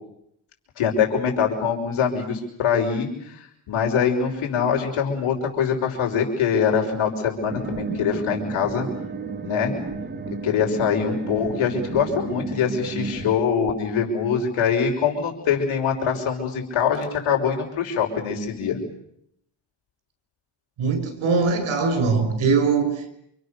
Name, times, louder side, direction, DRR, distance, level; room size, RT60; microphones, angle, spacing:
voice 1, 0.8-3.4 3.7-8.9 9.4-9.7 10.4-18.8, left 7 dB, 85° left, 5.9 m, -23 dB
sound 1, 7.5-13.4, right 4 dB, 20° right, 1.6 m, -32 dB
voice 2, 20.8-23.1, right 4 dB, 80° right, 6.8 m, -21 dB
28.5 x 28.0 x 6.8 m
cardioid pair, 140°, 48 cm